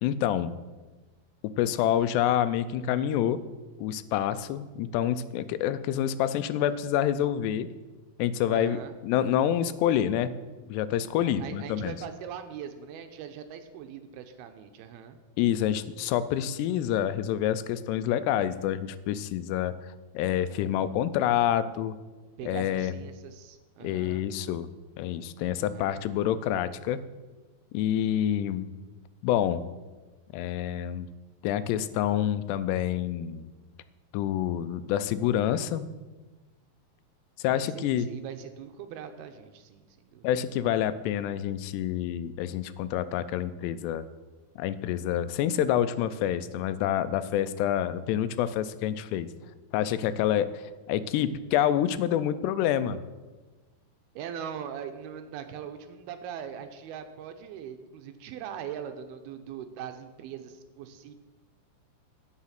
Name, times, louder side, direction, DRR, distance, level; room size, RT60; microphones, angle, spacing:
voice 1, 0.0-0.6 1.4-3.4 3.8-7.7 8.2-10.3 10.7-12.0 15.4-19.7 20.1-22.0 22.4-22.9 23.8-24.7 25.0-27.0 27.7-28.7 29.2-29.7 30.3-31.1 31.4-33.5 34.1-35.9 37.4-38.1 40.2-44.0 44.6-49.3 49.7-50.6 50.9-53.0, left 11 dB, 90° left, 13 dB, 2.7 m, -27 dB
voice 2, 8.5-8.9 11.2-15.2 22.4-24.3 25.6-26.0 37.5-40.3 40.6-40.7 54.2-61.1, right 8 dB, 80° right, 7 dB, 2.5 m, -41 dB
15.5 x 6.4 x 5.8 m, 1.3 s
omnidirectional pair, 4.8 m